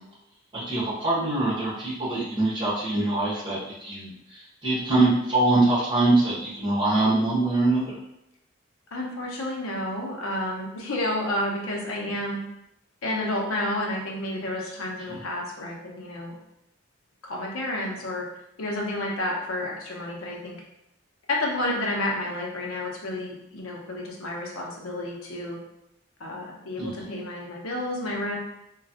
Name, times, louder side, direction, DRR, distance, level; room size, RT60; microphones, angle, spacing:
voice 1, 0.5-7.9 15.1-15.2 26.8-27.0, right 2 dB, 20° right, -9 dB, 1.2 m, -24 dB
voice 2, 8.9-12.4 13.0-16.4 17.2-18.2 18.6-20.6 21.3-25.6 26.2-28.4, left 1 dB, 85° left, -1 dB, 0.7 m, -30 dB
3.0 x 2.3 x 2.7 m, 0.84 s
head